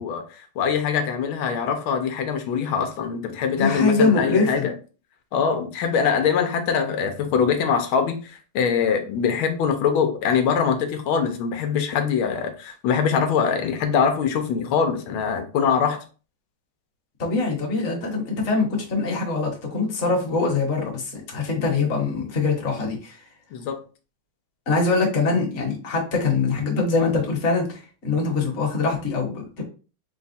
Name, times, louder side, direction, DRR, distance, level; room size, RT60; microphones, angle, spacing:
voice 1, 0.0-4.7 5.3-16.0 23.5-23.8, left 6 dB, 90° left, 6 dB, 1.6 m, -23 dB
voice 2, 3.5-4.7 17.2-23.2 24.7-29.6, left 3 dB, 40° left, 0 dB, 1.3 m, -23 dB
4.0 x 2.4 x 4.0 m, 0.35 s
omnidirectional pair, 2.2 m